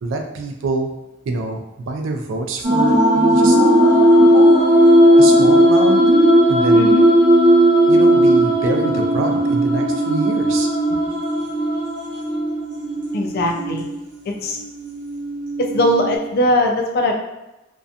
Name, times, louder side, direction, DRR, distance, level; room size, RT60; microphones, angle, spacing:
voice 1, 0.0-0.9 1.3-3.6 5.2-6.0 6.5-6.9 7.9-11.0, right 3 dB, 85° right, 3 dB, 0.4 m, -25 dB
sound 1, 2.6-16.1, right 1 dB, 45° right, 0.9 m, -15 dB
voice 2, 6.7-7.1 13.1-13.9 14.3-14.6 15.6-17.1, left 1 dB, 55° left, 2 dB, 0.3 m, -20 dB
2.6 x 2.2 x 2.4 m, 0.97 s
head